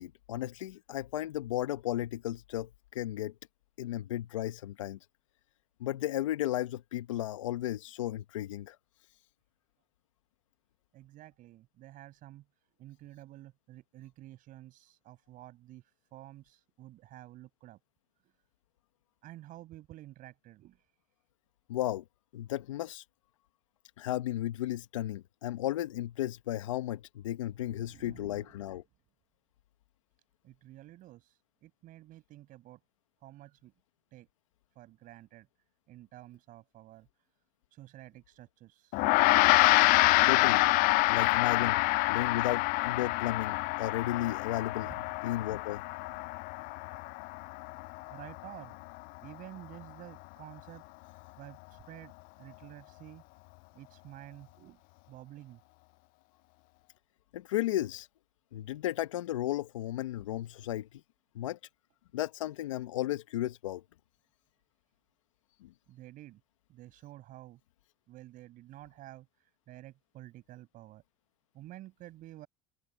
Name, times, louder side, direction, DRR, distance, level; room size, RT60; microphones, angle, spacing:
voice 1, 0.0-3.3 3.8-5.0 5.8-8.8 21.7-22.0 22.3-23.0 24.0-28.8 40.3-40.7 41.1-41.8 42.1-44.9 45.2-45.8 57.3-58.1 58.5-61.0 61.3-61.6 62.1-63.8 65.6-65.7, left 14 dB, 85° left, 1.2 m, -34 dB
voice 2, 10.9-12.4 12.8-17.8 19.2-20.8 27.6-28.6 30.4-32.8 33.2-33.7 34.1-34.3 34.7-35.5 35.9-37.1 37.7-39.1 44.9-45.0 46.4-46.5 48.1-48.8 49.2-50.8 51.4-52.1 52.4-53.2 53.7-54.8 55.1-55.6 65.9-66.4 66.7-67.6 68.1-69.3 69.7-71.0 71.5-72.5, right 15 dB, 60° right, 6.0 m, -50 dB
Gong, 38.9-48.6, left 25 dB, 65° left, 0.4 m, -27 dB
hypercardioid pair, 70°, 16 cm